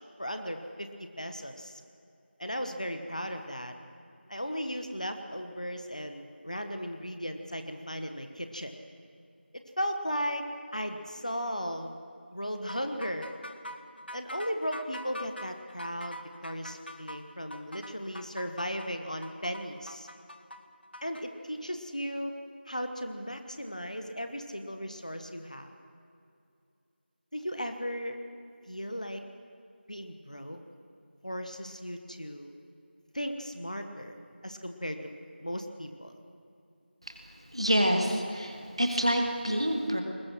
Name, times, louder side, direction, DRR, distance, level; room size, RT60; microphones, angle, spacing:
voice 1, 0.2-1.8 2.4-3.7 4.3-8.7 9.5-10.5 10.7-11.9 12.3-13.3 14.1-20.1 21.0-22.3 22.7-25.7 27.3-28.2 28.7-29.2 29.9-30.6 31.2-32.5 33.1-34.2 34.4-36.1, equal, 40° left, 6 dB, 1.3 m, -36 dB
sound 1, 12.7-21.2, equal, 65° left, 1.5 m, -44 dB
voice 2, 37.5-40.0, equal, 30° right, 3 dB, 1.6 m, -27 dB
21.0 x 21.0 x 6.1 m, 2.5 s
figure-of-eight pair, 180°, 6 cm